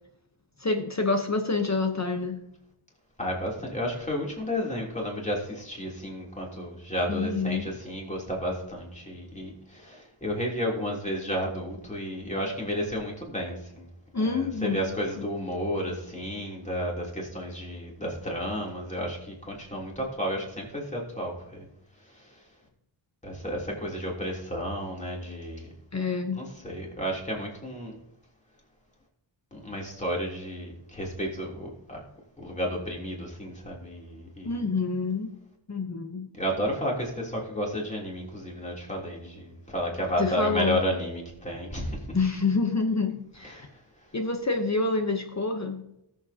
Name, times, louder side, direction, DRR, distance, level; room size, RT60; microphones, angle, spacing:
voice 1, 0.6-2.4 7.1-7.7 14.1-14.8 15.2-15.3 25.9-26.4 34.4-35.3 35.7-36.3 40.2-40.8 42.1-43.7 44.1-45.8, left 4 dB, 35° left, 5 dB, 1.0 m, -27 dB
voice 2, 3.2-13.9 14.1-21.7 22.0-22.3 23.2-25.7 26.3-28.0 29.5-32.0 32.4-34.5 36.4-42.2 43.4-43.7, equal, 15° left, -2 dB, 3.2 m, -32 dB
19.0 x 7.4 x 2.9 m, 0.82 s
wide cardioid pair, 90°, 50 cm